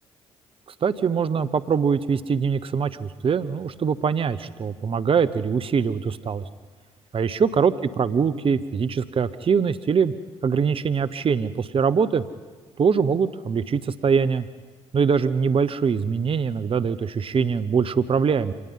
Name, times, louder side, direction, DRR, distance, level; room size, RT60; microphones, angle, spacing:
voice 1, 0.8-6.4 7.1-10.1 10.4-12.2 12.8-14.4 14.9-18.5, right 6 dB, 40° right, 13 dB, 0.9 m, -23 dB
26.0 x 19.0 x 5.7 m, 1.4 s
hypercardioid pair, 50°, 14 cm